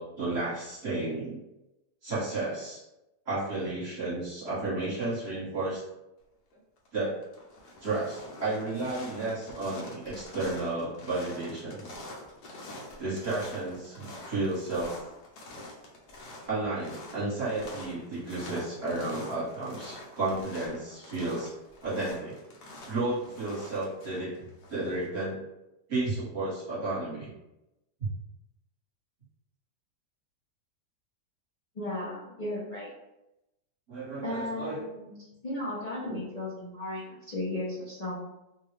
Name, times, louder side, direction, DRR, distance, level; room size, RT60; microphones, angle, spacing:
voice 1, 0.0-1.4 2.0-2.8 3.2-5.8 6.9-7.2 7.8-11.9 13.0-14.9 16.5-21.5 21.8-22.3 22.9-24.3 24.7-25.4 25.9-27.3 33.9-34.8 36.0-36.2, right 2 dB, 40° right, -9 dB, 1.4 m, -32 dB
sound 1, 6.5-6.9 7.2-25.1, left 1 dB, 75° left, 1.3 m, -46 dB
voice 2, 31.7-32.9 34.2-35.2 35.4-38.3, left 1 dB, 60° left, -8 dB, 0.4 m, -35 dB
3.3 x 2.3 x 3.2 m, 0.92 s
omnidirectional pair, 1.9 m